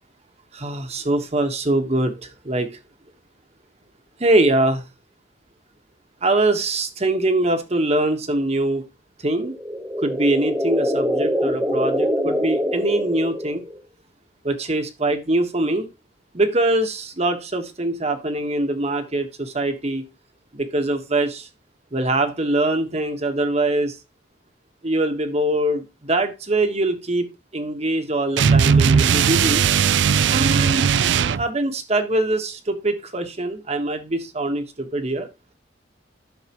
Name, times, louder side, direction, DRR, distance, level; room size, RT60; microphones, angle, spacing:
voice 1, 0.5-2.8 4.2-4.8 6.2-8.8 9.2-9.5 10.0-13.7 14.4-15.9 16.3-20.0 20.5-21.5 21.9-24.0 24.8-29.6 30.3-30.9 31.3-35.3, right 2 dB, 35° right, 1.3 m, -23 dB
sound 1, 9.4-13.8, equal, 10° right, 1.0 m, -24 dB
sound 2, 28.4-31.5, right 7 dB, 70° right, 0.4 m, -17 dB
11.5 x 6.5 x 3.0 m
head